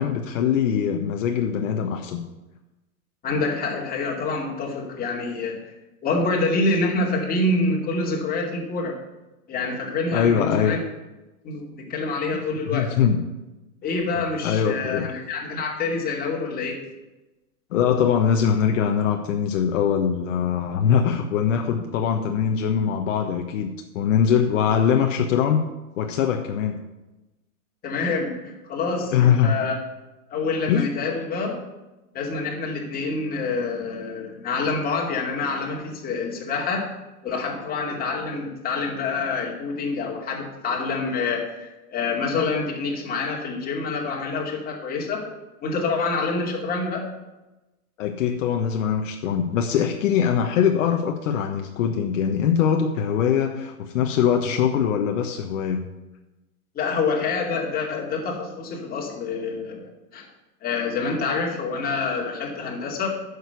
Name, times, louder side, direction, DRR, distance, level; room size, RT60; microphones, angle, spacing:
voice 1, 0.0-2.2 10.1-10.8 12.7-13.2 14.2-15.1 17.7-25.6 26.0-26.8 29.1-29.6 30.7-30.9 48.0-55.8, left 8 dB, 55° left, 4 dB, 1.1 m, -22 dB
voice 2, 3.2-5.7 6.0-9.0 9.5-10.8 11.4-12.9 13.8-16.8 27.8-29.8 30.3-31.6 32.1-36.9 37.2-45.2 45.6-47.1 56.7-60.2 60.6-63.1, left 3 dB, 20° left, -1 dB, 2.5 m, -27 dB
9.3 x 6.7 x 8.0 m, 1.0 s
hypercardioid pair, 140°, 45 cm